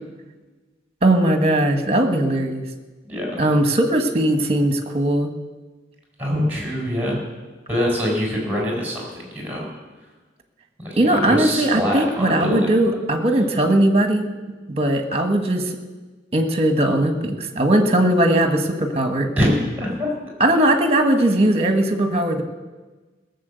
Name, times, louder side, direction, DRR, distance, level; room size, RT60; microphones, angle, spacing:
voice 1, 1.0-2.6 3.4-5.3 11.0-14.3 14.7-15.7 16.3-19.3 20.4-22.4, right 1 dB, 35° right, 6 dB, 1.4 m, -19 dB
voice 2, 3.0-3.4 6.2-7.2 7.7-9.7 10.8-12.8 19.4-20.1, equal, 10° right, -1 dB, 4.5 m, -24 dB
17.5 x 7.1 x 8.1 m, 1.3 s
head